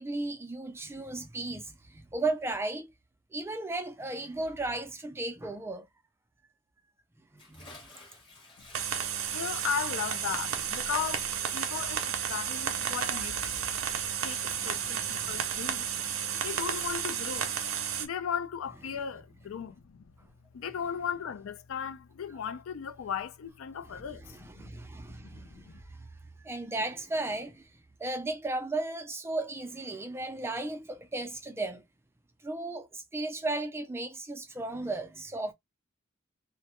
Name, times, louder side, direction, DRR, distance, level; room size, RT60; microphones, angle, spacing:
voice 1, 0.0-2.9 3.3-5.9 7.3-7.7 14.4-15.5 23.9-26.1 26.4-27.7 28.0-31.8 32.4-35.5, right 2 dB, 10° right, 0.3 m, -35 dB
Bathtub (filling or washing) / Splash splatter, 7.4-13.9, left 2 dB, 25° left, 0.8 m, -55 dB
sound 1, 8.7-18.1, right 8 dB, 75° right, 0.5 m, -32 dB
voice 2, 9.3-13.4 14.2-16.1 16.3-17.5 18.0-20.0 20.5-24.7 25.1-25.8, left 7 dB, 80° left, 0.4 m, -36 dB
2.2 x 2.0 x 2.8 m
head